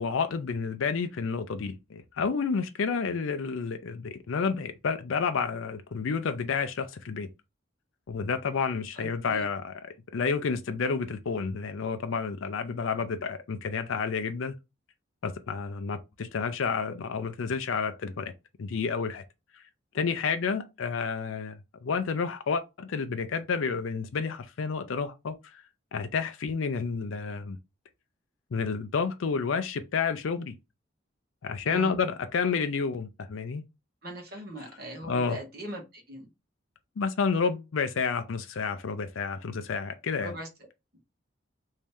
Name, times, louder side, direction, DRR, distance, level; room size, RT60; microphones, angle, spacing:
voice 1, 0.0-7.3 8.1-9.7 10.1-14.5 15.2-18.3 18.6-19.2 19.9-25.6 25.9-27.6 28.5-30.5 31.4-33.6 35.1-35.4 37.0-40.3, left 5 dB, 85° left, 0.5 m, -30 dB
voice 2, 8.9-9.5 31.7-31.9 34.0-36.3 40.2-40.5, right 1 dB, 50° right, 1.3 m, -40 dB
3.1 x 2.8 x 3.5 m
head